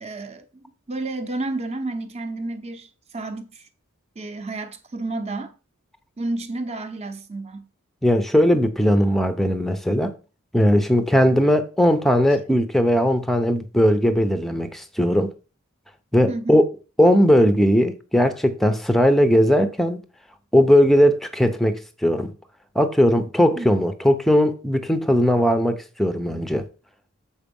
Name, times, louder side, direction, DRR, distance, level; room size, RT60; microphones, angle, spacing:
voice 1, 0.0-2.9 3.1-3.7 4.2-5.5 6.2-7.7 16.3-16.6 23.6-23.7, right 2 dB, 30° right, 0.8 m, -31 dB
voice 2, 8.0-10.1 10.5-15.3 16.1-16.6 17.0-20.0 20.5-22.3 22.8-26.6, equal, ahead, 0.6 m, -18 dB
7.2 x 4.6 x 5.3 m
head